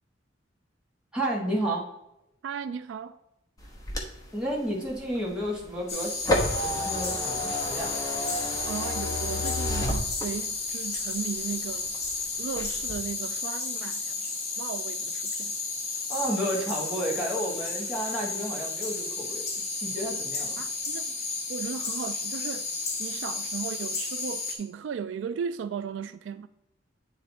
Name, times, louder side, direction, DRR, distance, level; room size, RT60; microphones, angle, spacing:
voice 1, 1.1-1.8 4.3-7.9 16.1-19.4 19.8-20.6, right 1 dB, 5° right, 1.7 m, -31 dB
voice 2, 2.4-3.2 8.6-11.9 12.4-14.2 14.6-15.6 20.6-21.1 21.5-22.7 23.0-26.5, right 6 dB, 75° right, 0.3 m, -36 dB
sound 1, 3.6-10.7 11.1-12.1 12.5-12.9, left 1 dB, 20° left, 1.0 m, -31 dB
sound 2, 5.9-24.6, left 3 dB, 35° left, 1.4 m, -33 dB
8.9 x 3.2 x 4.0 m
head